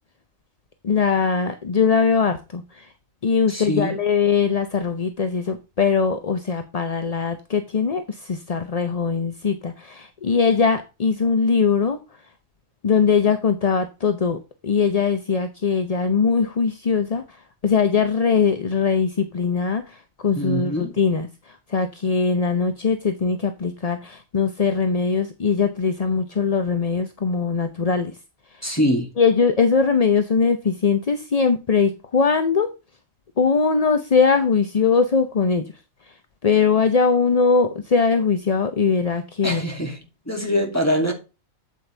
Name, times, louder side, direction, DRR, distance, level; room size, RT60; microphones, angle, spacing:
voice 1, 0.8-2.9 3.2-12.0 12.8-28.1 28.5-28.7 29.2-32.7 33.4-35.7 36.1-36.2 36.4-39.6, left 5 dB, 35° left, 0.7 m, -21 dB
voice 2, 3.5-4.0 20.4-21.0 28.6-29.1 39.4-40.0 40.3-41.1, equal, 10° left, 2.6 m, -23 dB
8.5 x 7.8 x 3.3 m
omnidirectional pair, 1.4 m